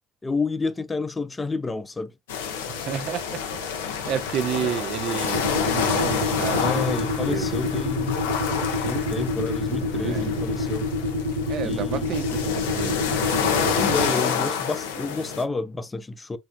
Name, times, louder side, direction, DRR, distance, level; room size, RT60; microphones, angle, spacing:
voice 1, 0.2-2.1 6.6-8.3 8.8-10.9 11.6-12.1 13.8-16.4, left 3 dB, 20° left, 0.5 m, -29 dB
sound 1, 2.3-15.4, left 7 dB, 75° left, 0.5 m, -28 dB
voice 2, 2.7-3.4 4.1-7.6 10.0-10.3 11.5-13.1, right 9 dB, 55° right, 0.4 m, -31 dB
sound 2, 5.3-14.1, left 2 dB, 90° right, 0.9 m, -27 dB
3.3 x 2.7 x 2.3 m
figure-of-eight pair, 55°, 0 cm